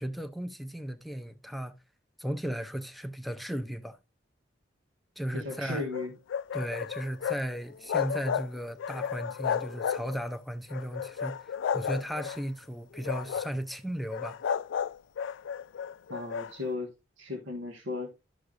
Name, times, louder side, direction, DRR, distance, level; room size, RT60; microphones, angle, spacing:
voice 1, 0.0-1.7 2.2-4.0 5.2-5.9 6.5-14.4, equal, ahead, 0.5 m, -36 dB
voice 2, 5.3-6.1 16.1-16.9 17.2-18.1, left 2 dB, 80° right, 1.5 m, -35 dB
sound 1, 5.5-7.4 7.7-8.5 8.8-10.3 10.7-12.4 12.9-13.6 14.1-16.5, left 7 dB, 75° left, 0.3 m, -33 dB
11.5 x 6.5 x 2.5 m
head